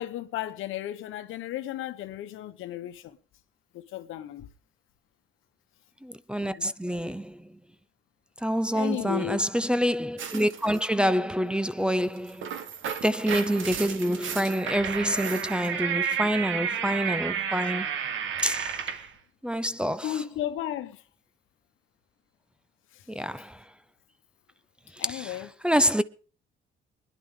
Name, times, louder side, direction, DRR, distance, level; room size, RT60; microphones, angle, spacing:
voice 1, 0.0-3.2 3.7-4.5 6.4-6.7 8.7-9.4 20.0-21.0 22.9-23.0 25.0-25.5, left 12 dB, 85° left, 1.0 m, -34 dB
voice 2, 6.0-7.4 8.4-12.5 13.0-18.0 18.4-18.8 19.4-20.2 23.1-23.6 25.0-25.4 25.6-26.0, equal, 5° right, 0.6 m, -27 dB
sound 1, 10.2-10.8 12.2-19.1, right 7 dB, 75° right, 1.5 m, -32 dB
23.0 x 10.5 x 3.7 m
cardioid pair, 90°, 20 cm